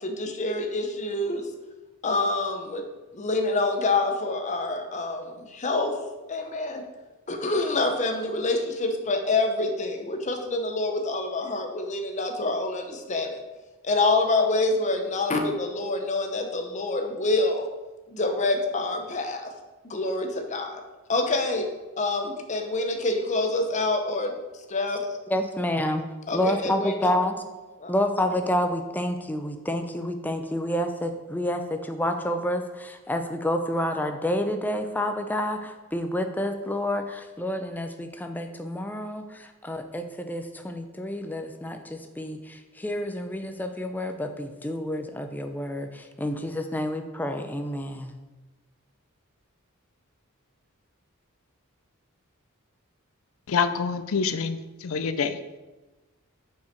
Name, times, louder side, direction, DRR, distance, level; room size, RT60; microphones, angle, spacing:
voice 1, 0.0-1.5 2.0-2.8 3.1-5.9 6.3-6.8 7.3-13.4 13.8-17.7 18.1-19.5 19.8-20.7 21.1-21.7 22.0-24.3 24.7-25.0 26.3-27.1 27.8-27.9, left 2 dB, 35° left, 4 dB, 0.8 m, -26 dB
voice 2, 25.3-26.0 26.3-27.4 27.9-48.1, left 1 dB, 10° left, 6 dB, 0.4 m, -29 dB
voice 3, 53.5-55.4, left 5 dB, 70° left, 11 dB, 0.5 m, -26 dB
5.7 x 4.7 x 4.5 m, 1.2 s
head